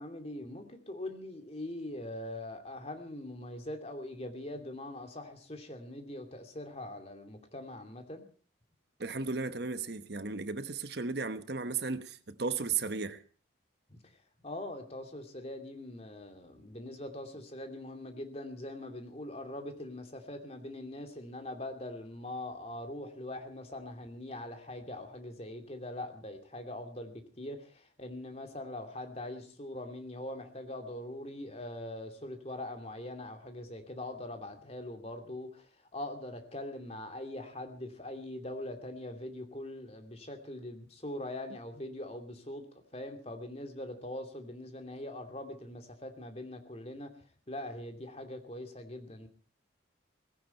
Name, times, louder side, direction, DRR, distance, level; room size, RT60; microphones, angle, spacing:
voice 1, 0.0-8.3 13.9-14.0 14.4-35.7 35.9-47.1 47.5-49.3, left 1 dB, 35° left, 2.7 m, -42 dB
voice 2, 9.0-13.2, right 4 dB, 60° right, 1.1 m, -35 dB
18.5 x 16.5 x 4.5 m
head